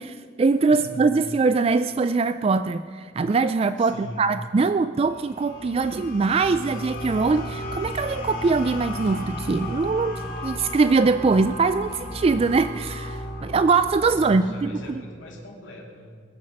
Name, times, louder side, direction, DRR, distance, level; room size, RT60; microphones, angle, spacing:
voice 1, 0.0-14.7, right 4 dB, 30° right, 12 dB, 0.3 m, -22 dB
voice 2, 0.7-1.0 3.8-4.3 14.0-16.1, left 1 dB, 75° left, -1 dB, 2.9 m, -40 dB
sound 1, 5.0-14.4, left 1 dB, 50° left, 1.9 m, -34 dB
Walk footsteps, 6.5-14.6, right 1 dB, 55° right, 4.5 m, -52 dB
21.5 x 7.5 x 6.5 m, 2.1 s
head